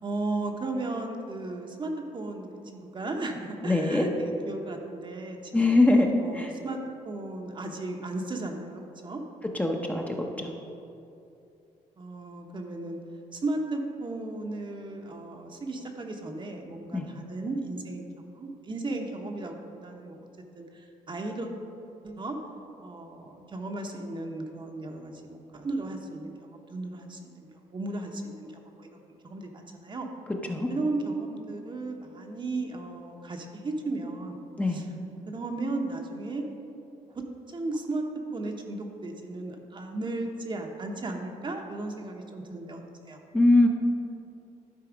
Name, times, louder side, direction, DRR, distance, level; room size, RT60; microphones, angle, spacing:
voice 1, 0.0-5.8 6.2-6.8 7.0-9.2 12.0-13.0 13.3-20.2 20.6-21.5 22.0-22.4 22.8-30.1 30.7-34.4 34.7-34.9 35.3-36.5 37.1-38.0 38.3-43.2, right 2 dB, 35° right, 3 dB, 0.9 m, -35 dB
voice 2, 3.6-4.1 5.5-6.5 9.5-10.5 16.9-17.1 30.5-30.7 34.6-34.8 43.3-43.7, left 2 dB, 10° left, 1 dB, 0.8 m, -22 dB
11.5 x 4.1 x 5.0 m, 2.7 s
cardioid pair, 85°, 14 cm